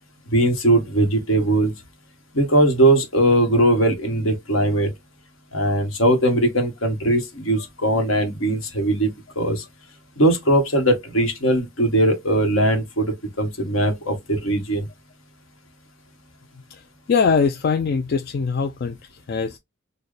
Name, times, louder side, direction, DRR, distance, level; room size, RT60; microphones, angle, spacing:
voice 1, 0.3-1.7 2.3-4.9 5.5-9.1 9.4-9.6 10.2-14.8, right 1 dB, 70° left, 1.3 m, -20 dB
voice 2, 17.1-19.6, left 5 dB, 50° left, 0.3 m, -22 dB
4.3 x 2.1 x 3.2 m
head